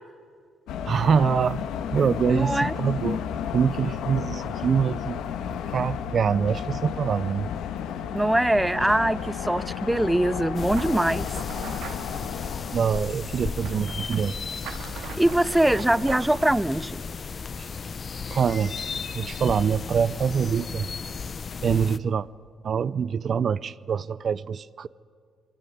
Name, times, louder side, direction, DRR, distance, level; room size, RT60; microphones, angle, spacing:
sound 1, 0.7-12.8, left 8 dB, 85° left, 1.4 m, -32 dB
voice 1, 0.9-1.6 1.9-3.2 3.5-5.2 5.7-7.5 12.7-14.4 17.6-17.7 18.3-18.7 19.1-20.9 21.6-22.3 22.6-24.9, right 7 dB, 50° right, 0.6 m, -24 dB
voice 2, 2.3-2.7 8.1-11.3 15.2-17.0, right 1 dB, 10° right, 0.6 m, -22 dB
sound 2, 10.5-22.0, left 5 dB, 40° left, 0.8 m, -35 dB
sound 3, 10.7-16.4, right 7 dB, 85° right, 2.0 m, -41 dB
24.0 x 23.0 x 9.4 m
cardioid pair, 90°, 0 cm